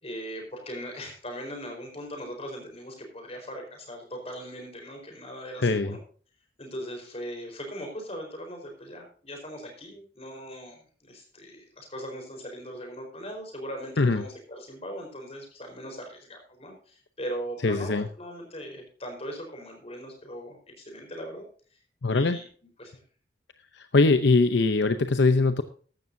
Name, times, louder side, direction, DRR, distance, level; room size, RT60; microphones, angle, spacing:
voice 1, 0.0-6.0 6.6-21.4 22.1-22.4 22.8-22.9, equal, 35° left, 3 dB, 4.4 m, -39 dB
voice 2, 5.6-6.0 14.0-14.2 17.6-18.1 22.0-22.4 23.7-25.6, left 3 dB, 75° left, 9 dB, 0.7 m, -22 dB
14.5 x 12.0 x 2.7 m, 0.42 s
head